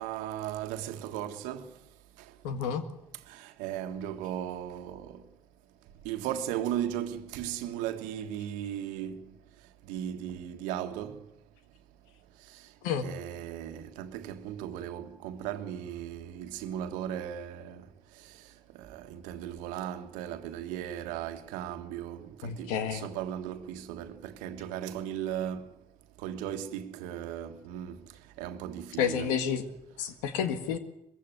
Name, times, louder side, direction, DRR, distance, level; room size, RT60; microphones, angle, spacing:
voice 1, 0.0-1.7 3.3-5.2 6.0-9.2 9.9-11.2 13.0-17.8 18.8-25.6 26.2-28.0 28.4-29.4, right 10 dB, 85° right, 1.5 m, -36 dB
voice 2, 2.4-2.8 12.8-13.1 22.4-23.0 29.0-29.6 30.0-30.8, left 7 dB, 85° left, 1.9 m, -30 dB
21.5 x 15.5 x 9.4 m
supercardioid pair, 65°, 13 cm